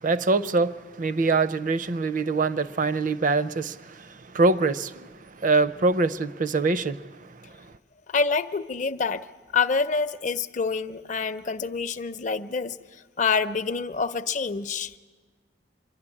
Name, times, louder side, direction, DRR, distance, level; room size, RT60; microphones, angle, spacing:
voice 1, 0.0-5.1 5.4-7.0, right 3 dB, 50° right, 0.6 m, -24 dB
voice 2, 8.1-9.3 9.5-15.0, left 5 dB, 45° left, 0.6 m, -27 dB
25.5 x 12.0 x 9.8 m
head